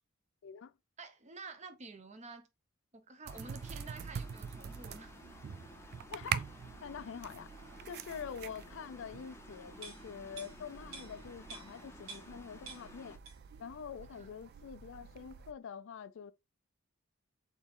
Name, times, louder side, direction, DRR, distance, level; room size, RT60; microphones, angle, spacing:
voice 1, 0.4-0.7 6.1-6.5 6.8-7.5 7.9-13.2 13.6-16.3, left 7 dB, 65° left, 0.4 m, -46 dB
voice 2, 1.0-2.5 2.9-5.1 14.1-14.3, right 3 dB, 35° right, 0.7 m, -50 dB
sound 1, 3.3-13.2, left 1 dB, 15° left, 0.6 m, -55 dB
sound 2, 3.3-15.5, right 8 dB, 50° right, 0.3 m, -45 dB
sound 3, 9.8-12.4 12.7-13.6 13.9-14.1, right 4 dB, 75° right, 1.9 m, -51 dB
4.2 x 3.5 x 3.6 m
head